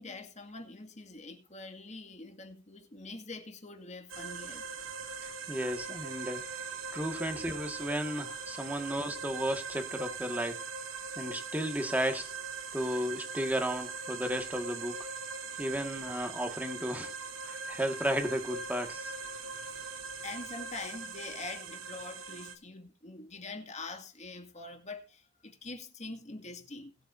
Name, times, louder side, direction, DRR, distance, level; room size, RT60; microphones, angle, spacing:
voice 1, 0.0-4.7 19.7-19.9 20.2-27.0, left 3 dB, 35° left, 2.2 m, -44 dB
sound 1, 4.1-22.6, right 4 dB, 85° right, 2.5 m, -41 dB
voice 2, 5.5-6.4 6.9-10.6 11.2-12.3 12.7-14.9 15.6-17.1 17.4-19.1, equal, 10° right, 1.8 m, -34 dB
21.0 x 7.8 x 2.7 m
head